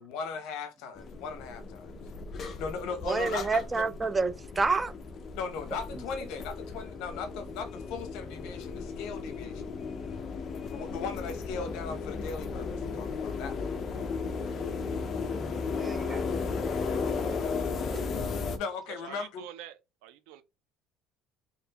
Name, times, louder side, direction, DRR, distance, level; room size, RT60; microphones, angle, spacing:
voice 1, 0.0-1.9 2.6-3.8 5.3-9.7 10.7-13.7 18.6-19.5, left 5 dB, 70° left, 0.8 m, -38 dB
sound 1, 1.0-18.6, left 4 dB, 35° left, 0.6 m, -35 dB
voice 2, 3.1-4.9 15.8-16.3 17.9-18.0, right 4 dB, 15° right, 0.3 m, -29 dB
voice 3, 19.0-19.7 20.0-20.4, right 12 dB, 85° right, 0.5 m, -45 dB
4.2 x 2.8 x 2.8 m
cardioid pair, 155°, 0 cm